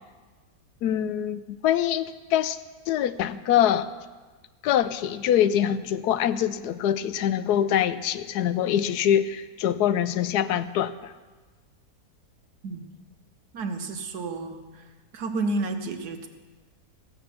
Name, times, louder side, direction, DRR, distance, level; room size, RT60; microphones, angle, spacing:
voice 1, 0.8-2.6 2.9-3.9 4.6-11.1, left 10 dB, 80° left, 14 dB, 1.1 m, -24 dB
voice 2, 13.5-14.8 15.1-16.3, right 3 dB, 80° right, 6 dB, 1.6 m, -31 dB
15.5 x 8.2 x 6.9 m, 1.3 s
omnidirectional pair, 1.7 m